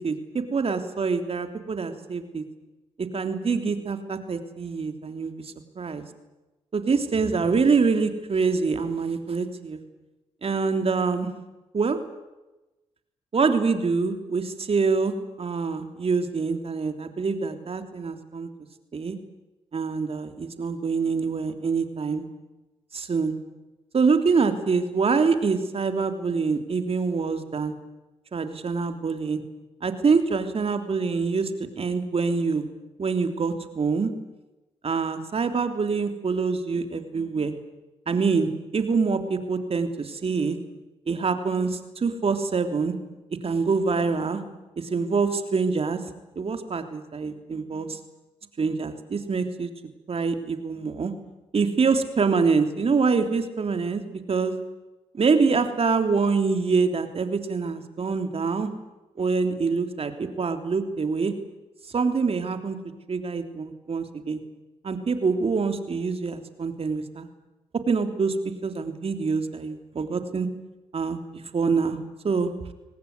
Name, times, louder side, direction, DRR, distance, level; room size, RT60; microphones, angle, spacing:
voice 1, 0.0-2.4 3.0-6.0 6.7-9.8 10.4-11.3 11.7-12.0 13.3-18.5 18.9-19.2 19.7-22.3 22.9-23.3 23.9-27.7 28.3-29.4 29.8-31.5 31.8-32.7 33.0-34.1 34.8-37.5 38.1-40.6 41.1-42.9 43.4-44.4 44.8-46.0 46.3-48.0 48.6-49.7 50.1-51.1 51.5-54.0 54.3-54.5 55.1-58.7 59.2-61.3 61.9-62.8 63.1-64.4 64.8-67.3 67.9-68.3 68.6-70.5 70.9-71.2 71.5-72.5, right 4 dB, 55° right, 7 dB, 3.3 m, -25 dB
24.0 x 19.0 x 9.6 m, 1.0 s
supercardioid pair, 50°, 12 cm